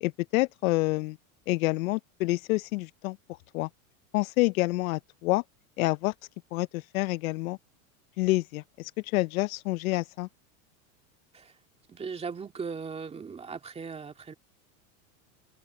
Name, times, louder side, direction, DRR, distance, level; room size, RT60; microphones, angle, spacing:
voice 1, 0.0-1.2 1.5-3.2 3.5-3.7 4.1-5.4 5.8-6.1 6.5-7.6 8.2-10.3, left 21 dB, 80° left, 0.6 m, -28 dB
voice 2, 11.9-14.3, right 5 dB, 15° right, 2.3 m, -38 dB
supercardioid pair, 150°, 41 cm